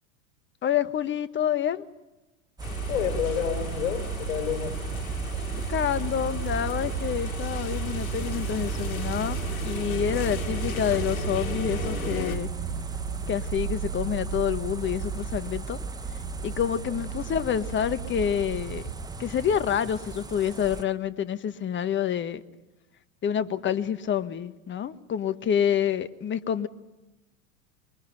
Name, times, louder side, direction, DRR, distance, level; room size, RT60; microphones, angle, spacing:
voice 1, 0.6-1.9 5.7-12.5 13.3-15.8 16.4-18.8 19.2-22.4 23.2-26.7, left 9 dB, 30° left, 1.4 m, -28 dB
sound 1, 2.6-12.4, left 6 dB, 90° left, 2.0 m, -38 dB
sound 2, 2.6-20.8, right 4 dB, 10° right, 1.4 m, -36 dB
sound 3, 2.6-19.0, right 9 dB, 60° right, 1.4 m, -35 dB
voice 2, 2.9-4.8 16.9-17.0, left 9 dB, 65° left, 4.6 m, -29 dB
25.5 x 23.0 x 9.3 m
hypercardioid pair, 100°, 41 cm